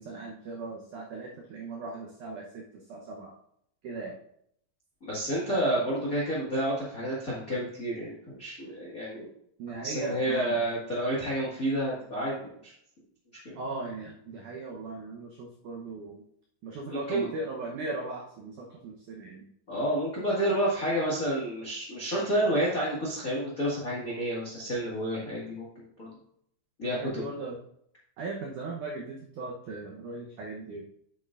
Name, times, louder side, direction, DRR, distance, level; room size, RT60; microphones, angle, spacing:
voice 1, 0.0-3.3 3.8-4.2 9.6-10.6 13.6-16.2 16.6-19.5 26.8-27.6 28.2-30.9, right 3 dB, 85° right, -1 dB, 1.7 m, -38 dB
voice 2, 5.0-9.3 9.8-12.7 13.4-13.6 16.9-17.3 19.7-26.1 26.8-27.2, right 1 dB, 65° left, -6 dB, 0.8 m, -30 dB
9.0 x 8.1 x 2.5 m, 0.71 s
omnidirectional pair, 5.0 m